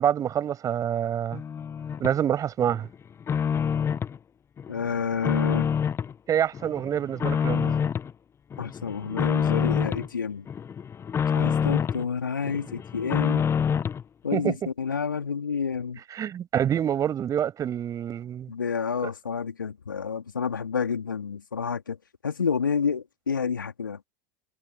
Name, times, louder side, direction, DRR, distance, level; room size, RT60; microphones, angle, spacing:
voice 1, 0.0-1.4 2.0-2.9 6.3-7.7 14.3-14.6 16.1-18.5, right 9 dB, 30° right, 7.5 m, -26 dB
sound 1, 1.3-2.2 2.6-4.2 4.6-6.1 6.5-8.1 8.5-10.1 10.5-12.1 12.4-14.0, left 7 dB, 25° left, 1.0 m, -27 dB
voice 2, 4.7-5.7 8.6-10.5 11.3-13.5 14.2-16.0 18.5-22.0 22.2-24.0, left 6 dB, 85° left, 3.0 m, -29 dB
figure-of-eight pair, 85°, 11 cm